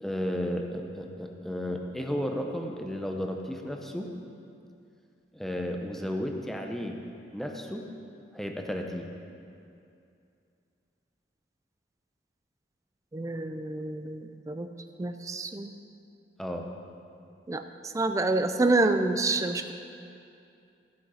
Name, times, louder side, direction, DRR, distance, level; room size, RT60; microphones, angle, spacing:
voice 1, 0.0-4.1 5.3-7.0 7.3-7.9 8.3-9.1 16.4-16.7, equal, ahead, 2 dB, 0.7 m, -33 dB
voice 2, 13.1-14.7 15.0-15.7 17.5-19.7, right 2 dB, 15° right, 8 dB, 0.4 m, -28 dB
14.0 x 6.1 x 5.6 m, 2.5 s
head